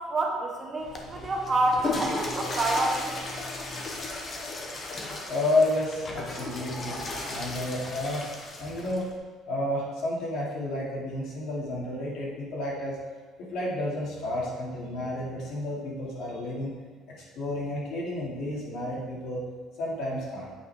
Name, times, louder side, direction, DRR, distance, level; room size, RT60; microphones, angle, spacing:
voice 1, 0.0-3.2, right 2 dB, 20° right, 0 dB, 0.9 m, -28 dB
Water / Toilet flush, 0.8-9.1, left 2 dB, 25° left, 0.9 m, -35 dB
voice 2, 5.3-7.0 7.3-8.2 8.6-9.1 9.5-13.0 13.5-16.7 17.1-19.4 19.8-20.5, left 1 dB, 60° left, -4 dB, 2.4 m, -31 dB
8.5 x 5.6 x 4.7 m, 1.4 s
cardioid pair, 180°, 0 cm